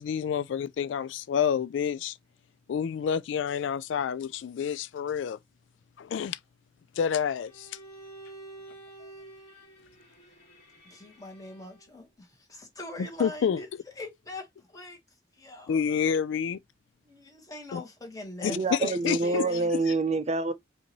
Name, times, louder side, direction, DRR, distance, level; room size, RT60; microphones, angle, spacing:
voice 1, 0.0-2.2 2.7-5.4 6.0-6.4 7.0-7.7 9.0-9.1 13.2-13.8 15.7-16.6 17.7-17.8 18.4-19.4 19.7-19.8, left 7 dB, 90° left, 0.3 m, -29 dB
Bowed string instrument, 7.4-12.0, right 2 dB, 40° left, 2.0 m, -49 dB
voice 2, 10.8-15.0 15.3-15.8 17.0-18.9 19.2-19.7, left 2 dB, 20° left, 1.6 m, -42 dB
voice 3, 18.4-20.5, right 3 dB, 35° right, 0.5 m, -27 dB
5.1 x 2.6 x 3.0 m
head